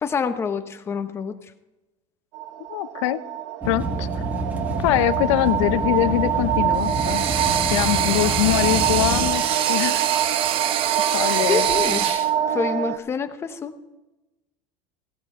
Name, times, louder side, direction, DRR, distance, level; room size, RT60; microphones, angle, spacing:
voice 1, 0.0-1.3 11.4-13.7, left 5 dB, 15° left, 8 dB, 0.8 m, -27 dB
sound 1, 2.3-13.0, right 9 dB, 80° right, 0.9 m, -25 dB
voice 2, 2.7-3.2 3.6-4.1 4.8-7.2 7.7-10.1 10.5-10.7 11.1-11.6, left 17 dB, 75° left, 13 dB, 0.8 m, -23 dB
sound 2, 3.6-9.3, right 1 dB, 10° right, 1.8 m, -28 dB
sound 3, 6.8-12.3, right 11 dB, 35° right, 0.6 m, -25 dB
16.5 x 13.5 x 3.7 m, 1.0 s
supercardioid pair, 165°, 16 cm